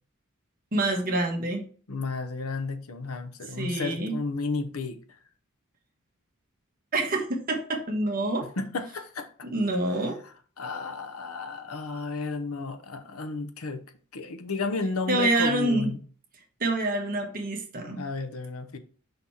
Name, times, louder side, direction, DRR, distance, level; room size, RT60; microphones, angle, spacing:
voice 1, 0.7-1.7 3.6-4.2 6.9-8.5 9.4-10.2 15.1-15.9 16.6-18.0, right 2 dB, 40° right, 1.3 m, -27 dB
voice 2, 1.9-5.2 8.4-9.3 10.6-13.9 14.1-16.0 18.0-18.8, left 3 dB, 90° left, 0.8 m, -33 dB
5.7 x 4.0 x 4.3 m
head